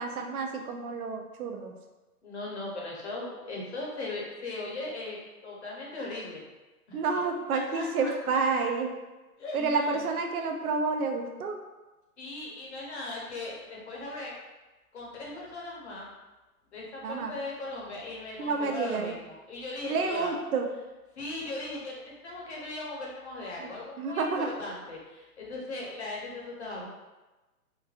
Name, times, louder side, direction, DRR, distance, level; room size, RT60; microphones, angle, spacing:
voice 1, 0.0-1.7 6.9-8.9 9.5-11.6 17.0-17.4 18.4-19.2 19.9-20.7 23.6-23.7 24.0-24.5, right 4 dB, 70° right, 4 dB, 0.5 m, -29 dB
voice 2, 2.2-6.4 6.9-7.0 7.5-8.1 9.4-9.7 12.2-14.3 14.9-16.1 16.7-20.3 21.2-26.9, left 2 dB, 45° left, -3 dB, 0.7 m, -38 dB
3.2 x 2.1 x 2.4 m, 1.1 s
hypercardioid pair, 170°, 45 cm